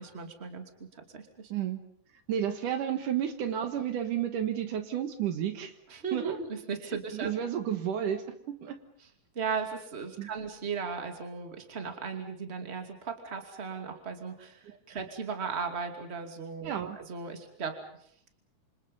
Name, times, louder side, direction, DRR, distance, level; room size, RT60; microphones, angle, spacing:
voice 1, 0.0-1.5 5.9-7.3 9.3-17.8, right 5 dB, 20° right, 5 dB, 2.4 m, -37 dB
voice 2, 2.3-5.7 6.1-6.4 7.1-8.8 10.2-10.3 14.6-14.8 16.6-17.0, right 9 dB, 70° right, 8 dB, 3.0 m, -31 dB
28.0 x 26.0 x 5.5 m, 0.65 s
omnidirectional pair, 3.9 m